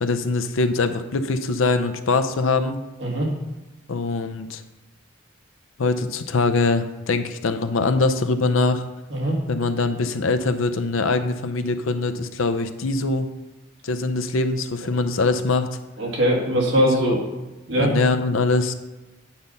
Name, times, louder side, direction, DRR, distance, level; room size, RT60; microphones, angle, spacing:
voice 1, 0.0-2.8 3.9-4.6 5.8-8.8 9.5-13.3 13.8-15.7 17.0-17.2 17.8-18.7, left 3 dB, 90° left, 9 dB, 0.6 m, -23 dB
voice 2, 16.0-17.2 17.7-17.9, equal, 70° right, -2 dB, 2.1 m, -21 dB
8.7 x 3.9 x 5.6 m, 1.1 s
head